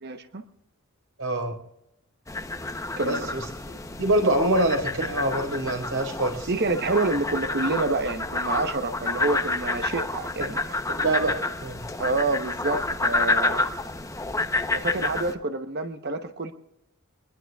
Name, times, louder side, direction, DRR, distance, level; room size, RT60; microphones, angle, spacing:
voice 1, 0.0-0.4 3.0-3.3 6.5-10.6 12.0-13.7 14.7-16.5, right 3 dB, 50° right, 8 dB, 1.0 m, -27 dB
voice 2, 1.2-1.6 3.0-3.4 3.9-6.5 10.4-10.6 10.9-11.9, right 1 dB, 90° right, 3 dB, 4.5 m, -25 dB
sound 1, 2.3-15.3, left 2 dB, 15° left, 0.8 m, -29 dB
25.5 x 20.5 x 2.4 m, 0.81 s
head